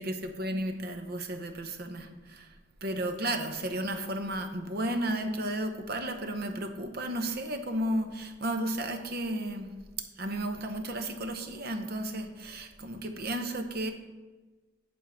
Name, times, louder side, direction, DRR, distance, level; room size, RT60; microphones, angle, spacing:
voice 1, 0.0-2.5 2.8-9.7 10.2-13.9, right 1 dB, 55° right, 6 dB, 0.8 m, -33 dB
8.6 x 3.7 x 5.7 m, 1.3 s
head